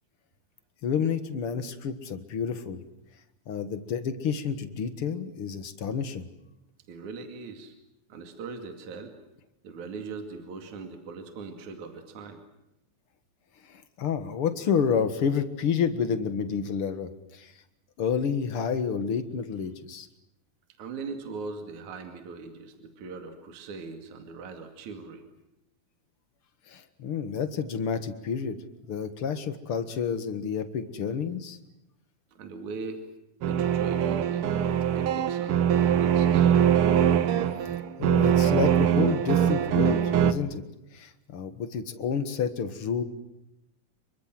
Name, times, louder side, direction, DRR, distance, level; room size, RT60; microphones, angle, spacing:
voice 1, 0.8-2.8 3.5-6.3 13.7-17.5 18.0-20.1 26.7-28.5 28.9-31.6 38.0-40.6 40.9-43.0, left 6 dB, 50° left, 10 dB, 1.9 m, -29 dB
voice 2, 6.9-7.7 8.1-9.1 9.6-12.4 20.8-25.2 32.3-33.0 33.4-36.6, right 4 dB, 55° right, 6 dB, 3.6 m, -40 dB
sound 1, 33.4-40.3, right 9 dB, 85° right, 1.2 m, -22 dB
28.0 x 24.0 x 7.7 m, 0.89 s
omnidirectional pair, 4.3 m